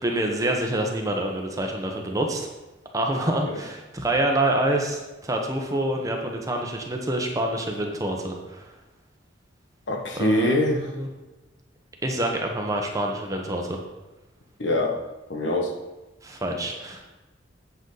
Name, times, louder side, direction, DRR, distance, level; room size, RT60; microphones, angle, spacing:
voice 1, 0.0-2.5 2.9-8.7 10.2-10.7 11.0-11.1 12.0-13.8 16.2-17.1, right 1 dB, 20° right, 1 dB, 1.1 m, -26 dB
voice 2, 9.9-10.9 14.6-14.9 15.3-15.7, left 1 dB, 70° left, 1 dB, 1.4 m, -24 dB
8.2 x 8.0 x 4.0 m, 1.1 s
head